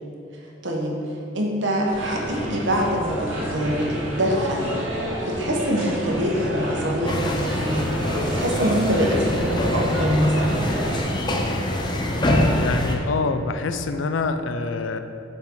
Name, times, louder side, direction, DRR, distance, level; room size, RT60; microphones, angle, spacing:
voice 1, 0.6-1.0 1.3-4.7 5.3-7.9 8.3-10.7, equal, 70° right, 0 dB, 1.1 m, -24 dB
sound 1, 1.9-11.0, equal, 85° right, 1.5 m, -29 dB
sound 2, 7.1-13.0, left 1 dB, 25° left, 0.6 m, -24 dB
voice 2, 12.5-15.0, left 4 dB, 75° left, 9 dB, 0.4 m, -26 dB
7.2 x 5.5 x 3.8 m, 2.7 s
head